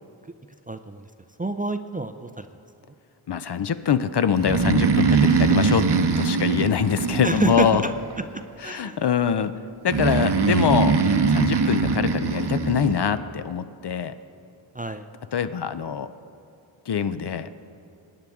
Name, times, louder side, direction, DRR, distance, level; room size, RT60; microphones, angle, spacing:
voice 1, 0.7-1.0 1.4-2.5 7.2-7.9 8.3-9.0 14.7-15.1, right 2 dB, 20° right, 8 dB, 0.4 m, -28 dB
voice 2, 3.3-5.9 6.2-7.8 8.6-9.5 9.8-11.0 11.3-14.1 15.3-16.1 16.9-17.5, left 7 dB, 55° left, 12 dB, 0.5 m, -24 dB
Breathing, 4.4-8.1 9.9-13.0, right 5 dB, 55° right, 0.8 m, -22 dB
19.0 x 9.2 x 3.6 m, 2.6 s
wide cardioid pair, 50°, 48 cm